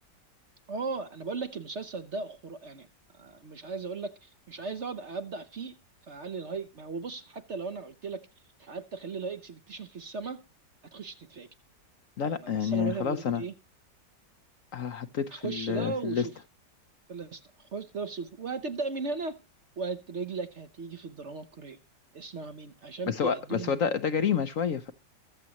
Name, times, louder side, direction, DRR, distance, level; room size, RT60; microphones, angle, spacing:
voice 1, 0.7-2.9 3.1-5.7 6.1-8.2 8.6-10.4 10.9-11.5 12.3-13.5 15.3-16.3 17.1-19.4 19.8-21.8 22.1-23.8, right 4 dB, 50° right, 9 dB, 1.0 m, -37 dB
voice 2, 12.2-13.4 14.7-16.3 23.1-24.9, left 7 dB, 55° left, 10 dB, 1.1 m, -29 dB
22.5 x 7.5 x 3.0 m, 0.29 s
omnidirectional pair, 1.9 m